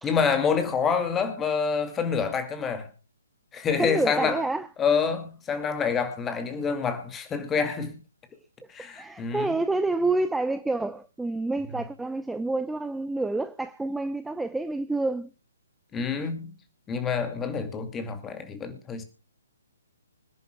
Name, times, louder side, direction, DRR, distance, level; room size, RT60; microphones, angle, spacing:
voice 1, 0.0-2.9 3.5-4.4 4.8-8.0 8.7-9.6 15.9-16.5 16.9-19.0, left 6 dB, 15° left, 2.2 m, -27 dB
voice 2, 3.8-4.7 9.0-15.3, right 2 dB, 5° right, 0.5 m, -28 dB
25.5 x 10.5 x 2.2 m
figure-of-eight pair, 130°, 0 cm